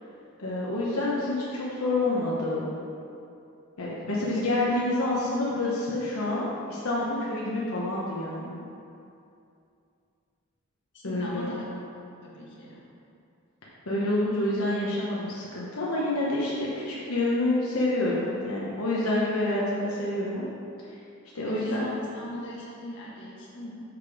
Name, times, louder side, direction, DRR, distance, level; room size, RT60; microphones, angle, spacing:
voice 1, 0.4-2.7 3.8-8.6 11.0-11.5 13.9-20.5 21.3-21.9, left 2 dB, 85° left, -6 dB, 1.1 m, -28 dB
voice 2, 10.9-11.6 12.2-12.8 21.4-23.8, left 1 dB, 55° left, -6 dB, 1.6 m, -39 dB
6.7 x 5.1 x 4.9 m, 2.6 s
head